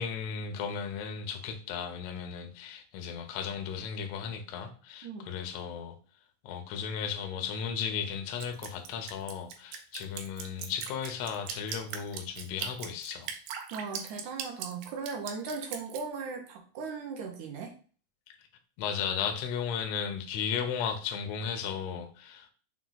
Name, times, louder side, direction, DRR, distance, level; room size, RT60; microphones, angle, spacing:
voice 1, 0.0-5.9 6.4-13.3 18.3-18.4 18.8-22.5, left 7 dB, 80° left, 1.5 m, -35 dB
Drip, 8.4-16.0, right 7 dB, 90° right, 2.4 m, -39 dB
voice 2, 13.7-17.7, right 5 dB, 75° right, 1.9 m, -38 dB
5.9 x 2.3 x 3.9 m
omnidirectional pair, 4.0 m